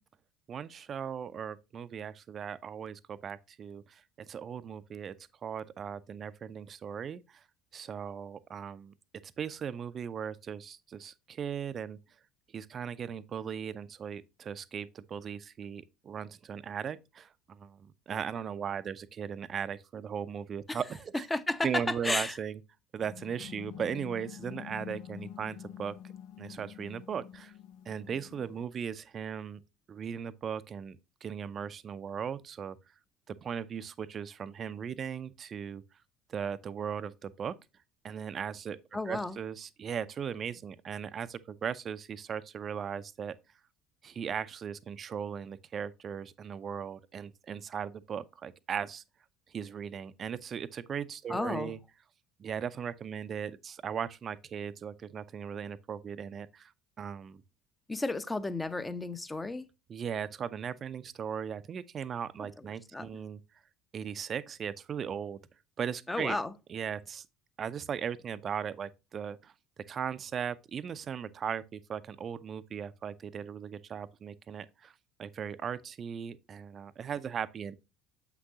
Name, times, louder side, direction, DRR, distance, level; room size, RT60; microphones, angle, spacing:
voice 1, 0.5-5.2 5.4-7.4 7.7-8.9 9.2-12.0 12.5-21.3 21.6-22.6 22.9-25.9 26.4-27.5 27.9-29.6 29.9-32.8 33.3-35.8 36.3-37.5 38.0-38.8 39.1-43.3 44.0-49.0 49.5-51.8 52.4-56.7 57.0-57.4 59.9-63.4 63.9-65.4 65.8-66.4 66.7-67.3 67.6-69.5 69.9-74.9 75.2-77.8, right 7 dB, 40° right, 0.6 m, -38 dB
voice 2, 21.3-22.4 38.9-39.4 51.3-51.7 57.9-59.7 62.6-62.7 62.9-63.1 66.1-66.5, left 2 dB, 15° left, 0.7 m, -33 dB
sound 1, 23.0-28.6, left 10 dB, 65° left, 0.6 m, -47 dB
7.6 x 6.1 x 2.8 m
hypercardioid pair, 65°, 0 cm